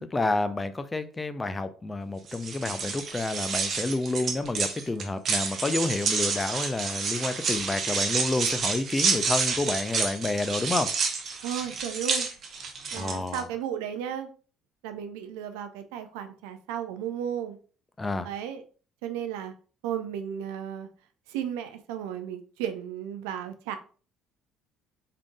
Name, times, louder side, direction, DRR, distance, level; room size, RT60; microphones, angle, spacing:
voice 1, 0.1-10.9 12.9-13.5 18.0-18.3, left 2 dB, 20° left, 0.4 m, -29 dB
sound 1, 2.3-13.4, right 5 dB, 50° right, 0.7 m, -29 dB
voice 2, 11.4-12.3 12.9-14.3 14.8-17.6 18.2-18.6 19.0-19.5 19.8-20.9 21.3-23.8, right 9 dB, 70° right, 0.4 m, -34 dB
3.7 x 3.6 x 2.3 m
figure-of-eight pair, 55°, 0 cm